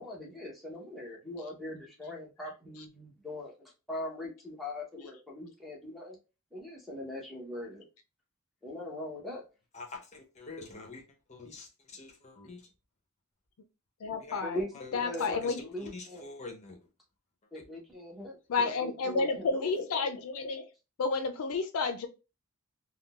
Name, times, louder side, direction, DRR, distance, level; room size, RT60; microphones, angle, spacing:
voice 1, 0.0-6.2 6.5-7.8 8.6-9.4 14.4-16.2 17.5-19.7, left 1 dB, ahead, -4 dB, 0.8 m, -41 dB
voice 2, 9.7-11.0 11.3-12.7 14.2-14.4 14.7-15.5 15.8-16.9 17.5-17.6, left 3 dB, 30° left, 3 dB, 0.7 m, -45 dB
voice 3, 14.0-14.6 14.9-15.7 18.5-20.7 21.0-22.1, left 4 dB, 70° left, 8 dB, 0.4 m, -31 dB
3.6 x 2.3 x 2.3 m, 0.30 s
head